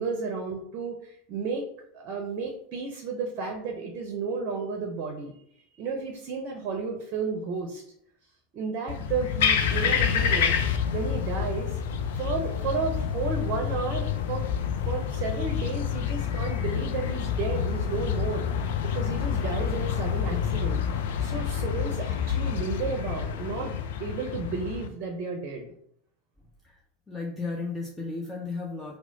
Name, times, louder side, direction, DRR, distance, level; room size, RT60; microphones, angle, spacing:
voice 1, 0.0-1.6 1.9-5.3 5.8-7.8 8.5-10.6 10.9-11.8 12.1-14.5 14.9-18.5 18.9-20.8 21.2-25.7, right 4 dB, 45° right, 2 dB, 0.5 m, -32 dB
sound 1, 8.9-24.9, left 8 dB, 65° left, 0.3 m, -28 dB
voice 2, 27.1-29.0, left 3 dB, 15° left, -2 dB, 0.5 m, -34 dB
3.0 x 2.0 x 3.8 m, 0.69 s
figure-of-eight pair, 85°, 0 cm